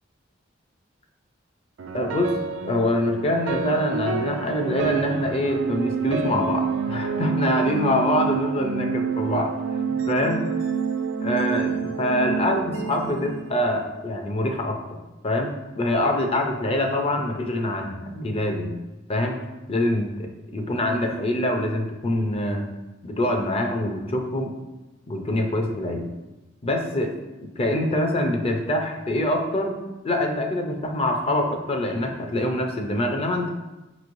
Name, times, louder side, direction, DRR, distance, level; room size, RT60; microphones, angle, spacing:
sound 1, 1.8-14.1, right 5 dB, 75° right, 0.3 m, -28 dB
voice 1, 1.9-2.4 2.6-9.5 10.1-10.4 11.2-15.0 15.2-18.7 19.1-19.4 19.7-20.3 20.5-22.7 23.0-24.5 25.1-26.1 26.6-27.1 27.4-29.8 30.0-33.5, left 1 dB, 30° left, 3 dB, 0.5 m, -25 dB
5.2 x 3.0 x 2.6 m, 1.0 s
head